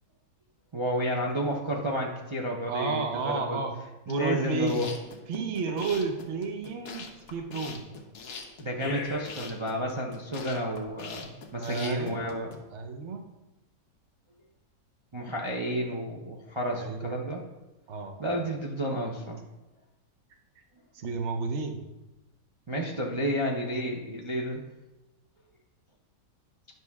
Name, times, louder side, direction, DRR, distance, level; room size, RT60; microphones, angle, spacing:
voice 1, 0.7-3.6 4.1-5.0 8.6-12.5 15.1-17.4 18.2-19.4 22.7-24.6, equal, 30° right, -1 dB, 0.5 m, -31 dB
voice 2, 2.7-3.7 4.1-4.9 5.3-7.9 11.6-12.2 12.7-13.3 16.7-17.1 17.9-18.2 20.9-21.8, right 4 dB, 50° right, 5 dB, 1.0 m, -31 dB
sound 1, 4.5-12.6, left 4 dB, 60° left, 1.3 m, -42 dB
10.5 x 6.1 x 3.6 m, 1.0 s
omnidirectional pair, 1.9 m